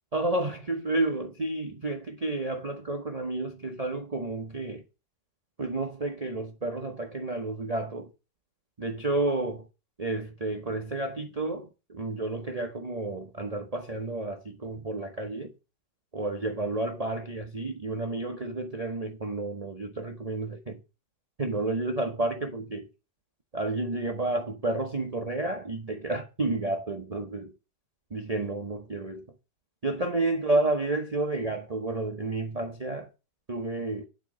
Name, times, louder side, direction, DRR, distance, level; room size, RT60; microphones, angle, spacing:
voice 1, 0.1-4.8 5.6-8.1 8.8-9.7 10.0-15.5 16.1-20.8 21.4-22.9 23.5-27.5 28.1-29.3 29.8-33.1 33.5-34.1, right 2 dB, 30° right, 0.8 m, -31 dB
9.9 x 4.6 x 6.2 m
omnidirectional pair, 1.9 m